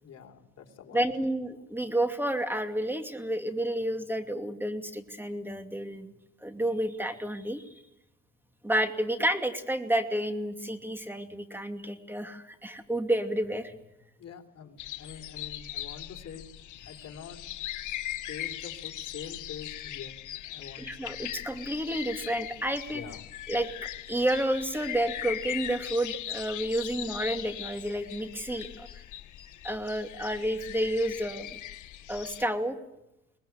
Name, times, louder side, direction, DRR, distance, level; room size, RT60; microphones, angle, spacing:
voice 1, 0.0-1.1 14.2-16.5 16.9-17.4 18.3-21.2 22.9-23.2, left 7 dB, 55° left, 3 dB, 3.7 m, -45 dB
voice 2, 0.9-6.1 6.4-7.6 8.6-13.7 20.8-23.0 23.5-23.7 24.1-28.9 29.6-31.6 32.1-32.8, right 1 dB, 5° right, 7 dB, 2.5 m, -30 dB
sound 1, 14.8-32.4, left 13 dB, 75° left, 1.5 m, -40 dB
22.0 x 20.0 x 9.5 m, 0.89 s
cardioid pair, 90°, 30 cm